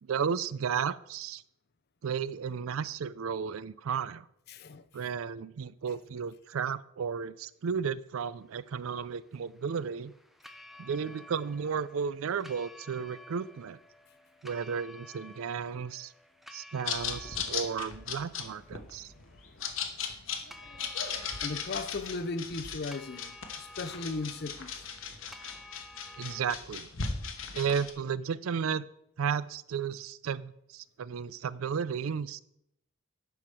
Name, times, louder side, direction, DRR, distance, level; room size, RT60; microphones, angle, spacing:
voice 1, 0.0-1.4 2.0-4.3 4.9-10.1 10.8-13.8 14.4-16.1 16.5-19.1 26.2-26.9 27.5-28.8 29.2-32.4, right 6 dB, 75° right, 0.4 m, -33 dB
voice 2, 4.5-4.8 19.2-19.3 21.4-24.9, left 3 dB, 50° left, 0.6 m, -37 dB
sound 1, 8.6-26.5, left 1 dB, ahead, 0.5 m, -53 dB
sound 2, 16.9-27.9, left 6 dB, 65° left, 1.1 m, -37 dB
11.0 x 5.8 x 4.8 m
head